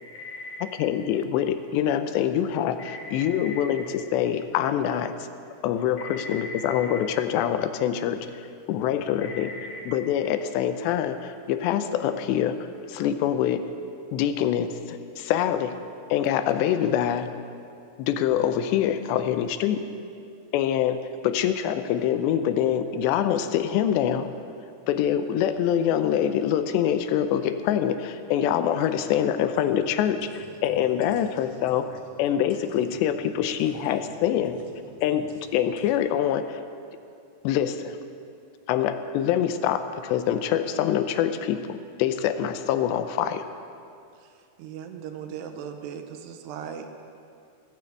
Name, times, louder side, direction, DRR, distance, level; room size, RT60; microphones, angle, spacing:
voice 1, 0.0-0.6 2.8-3.6 6.0-7.0 9.2-9.8 28.8-28.9 30.2-32.6 33.9-34.1 34.9-35.0, left 2 dB, 40° left, -3 dB, 2.6 m, -41 dB
voice 2, 0.8-2.8 3.1-5.1 5.6-9.5 9.9-13.7 14.1-15.8 16.1-17.3 18.0-19.8 20.5-24.3 24.9-31.9 32.2-34.6 35.0-35.3 35.5-36.6 37.4-38.0 38.7-43.4, left 10 dB, 85° left, 10 dB, 2.8 m, -25 dB
voice 3, 44.2-46.9, right 8 dB, 80° right, 6 dB, 2.8 m, -38 dB
15.0 x 9.7 x 8.2 m, 2.4 s
omnidirectional pair, 5.0 m